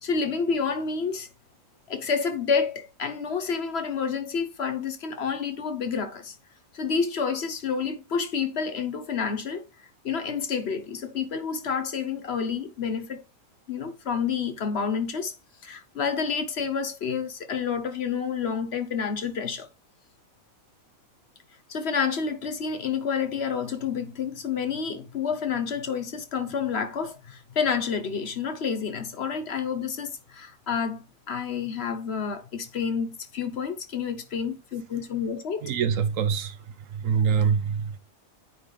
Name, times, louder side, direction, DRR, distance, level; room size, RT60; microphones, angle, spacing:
voice 1, 0.0-1.3 1.9-6.4 6.7-9.7 10.0-13.2 13.7-15.4 15.6-19.7 21.7-35.6, left 6 dB, 55° left, 1.0 m, -29 dB
voice 2, 35.6-38.0, right 6 dB, 70° right, 1.1 m, -25 dB
9.1 x 3.3 x 3.9 m
omnidirectional pair, 1.5 m